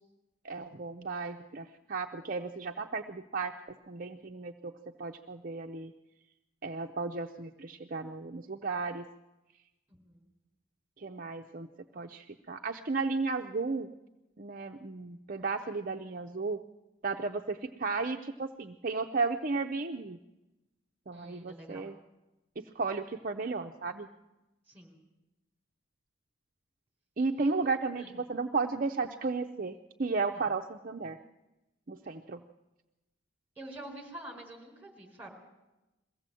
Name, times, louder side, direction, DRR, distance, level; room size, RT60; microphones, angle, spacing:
voice 1, 0.4-3.5 3.9-4.7 5.0-5.9 6.6-9.1 11.0-11.7 11.9-13.9 14.4-16.6 17.0-20.2 21.1-22.0 22.6-24.1 27.2-31.2 31.9-32.4, right 4 dB, 45° right, 3 dB, 0.6 m, -34 dB
voice 2, 9.9-10.3 21.1-21.9 24.7-25.0 27.4-28.2 30.3-30.5 33.6-35.3, right 1 dB, 10° right, 1 dB, 4.2 m, -47 dB
22.0 x 15.5 x 7.6 m, 1.0 s
head